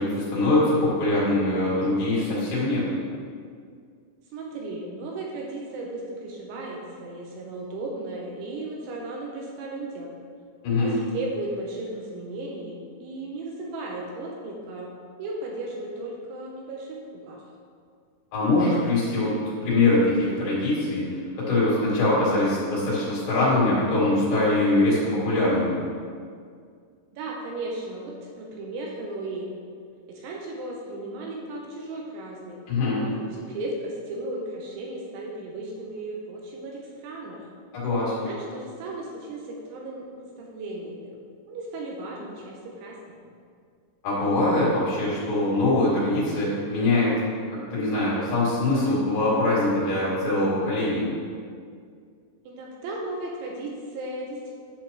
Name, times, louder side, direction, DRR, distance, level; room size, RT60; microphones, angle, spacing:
voice 1, 0.0-2.9 10.6-11.0 18.3-25.8 32.7-33.1 37.7-38.3 44.0-47.2 47.5-51.1, left 2 dB, 60° left, -8 dB, 4.5 m, -23 dB
voice 2, 4.3-10.2 10.8-14.9 15.2-17.4 27.1-29.6 30.1-32.6 33.0-37.5 38.2-40.1 40.4-43.0 43.2-43.4 52.4-54.5, right 2 dB, 80° right, -2 dB, 3.0 m, -35 dB
10.5 x 7.6 x 3.0 m, 2.1 s
omnidirectional pair, 5.8 m